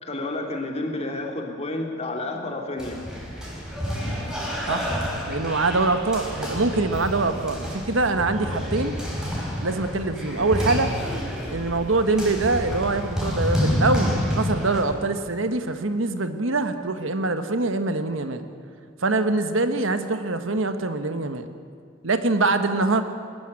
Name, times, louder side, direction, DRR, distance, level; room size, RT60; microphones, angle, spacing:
voice 1, 0.0-3.0, left 2 dB, 30° left, 2 dB, 2.9 m, -30 dB
sound 1, 2.8-14.8, equal, 5° right, 4.2 m, -29 dB
voice 2, 5.3-8.9 9.6-10.9 11.5-18.4 19.0-21.5 22.0-23.0, right 3 dB, 75° right, 8 dB, 1.4 m, -24 dB
22.5 x 14.0 x 9.8 m, 2.1 s
head